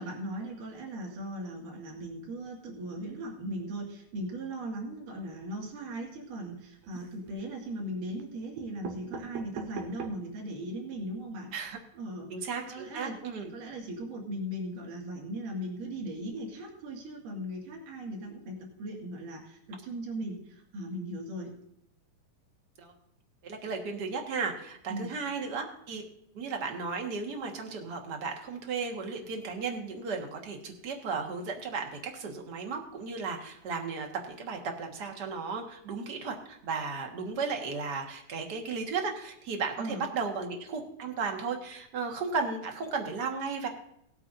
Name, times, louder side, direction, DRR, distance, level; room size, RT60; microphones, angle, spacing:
voice 1, 0.0-11.5 11.9-13.2 13.5-21.5 24.9-25.2 39.8-40.1, right 1 dB, 65° right, -1 dB, 3.6 m, -38 dB
sound 1, 6.8-7.5 8.2-8.3 8.6-10.4 10.9-11.0 11.2-11.3 11.5-11.7, right 6 dB, 85° right, 3.0 m, -42 dB
voice 2, 12.3-13.5 22.8-22.9 23.4-26.0 26.3-43.7, right 4 dB, 45° right, 3 dB, 1.3 m, -35 dB
19.5 x 8.5 x 2.6 m, 0.76 s
omnidirectional pair, 4.1 m